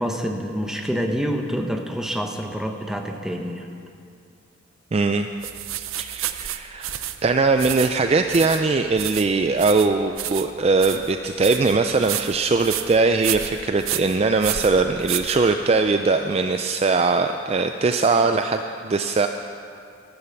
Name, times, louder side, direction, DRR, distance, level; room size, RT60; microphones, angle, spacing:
voice 1, 0.0-3.7, equal, ahead, 3 dB, 0.8 m, -27 dB
voice 2, 4.9-5.3 5.8-6.9 7.2-19.3, right 3 dB, 30° right, 7 dB, 0.3 m, -21 dB
sound 1, 5.4-15.9, right 11 dB, 80° right, 0.6 m, -31 dB
12.5 x 11.5 x 6.9 m, 2.5 s
head